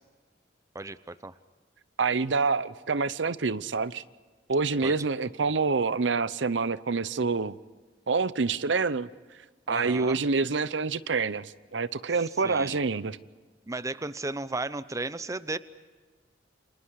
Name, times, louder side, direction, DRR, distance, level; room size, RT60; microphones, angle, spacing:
voice 1, 0.7-1.4 4.8-4.9 9.7-10.2 12.4-12.8 13.7-15.6, right 2 dB, 20° right, 0.7 m, -34 dB
voice 2, 2.0-4.0 4.5-7.5 8.1-9.1 9.7-13.2, right 4 dB, 80° right, 0.8 m, -27 dB
29.5 x 26.5 x 4.8 m
head